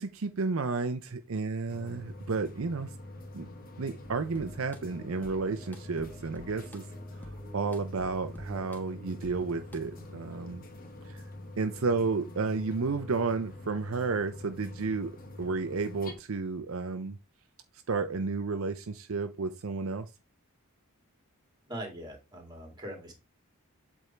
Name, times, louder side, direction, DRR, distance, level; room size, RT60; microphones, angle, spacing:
voice 1, 0.0-2.9 3.3-3.5 3.8-6.8 7.2-10.6 11.0-11.2 11.6-15.1 15.4-17.2 17.9-20.1, right 4 dB, 65° right, 8 dB, 0.6 m, -32 dB
sound 1, 1.7-16.1, left 1 dB, 40° left, 1.2 m, -45 dB
sound 2, 4.0-10.0, equal, 10° left, 1.1 m, -51 dB
voice 2, 21.6-23.1, right 1 dB, 20° right, 2 dB, 2.4 m, -41 dB
8.1 x 3.6 x 4.4 m, 0.27 s
head